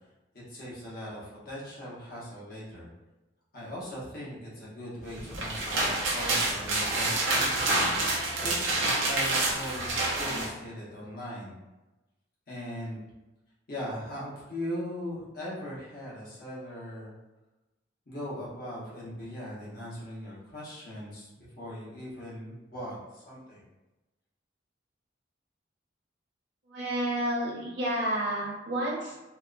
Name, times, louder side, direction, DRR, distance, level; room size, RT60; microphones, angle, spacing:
voice 1, 0.3-2.9 3.5-11.5 12.5-13.0 13.7-17.1 18.1-21.3 21.6-23.6, equal, 50° left, -7 dB, 1.0 m, -39 dB
sound 1, 5.2-10.5, right 2 dB, 90° right, 0.5 m, -28 dB
voice 2, 26.7-29.1, right 1 dB, 60° right, -5 dB, 0.8 m, -30 dB
2.7 x 2.1 x 2.4 m, 1.1 s
head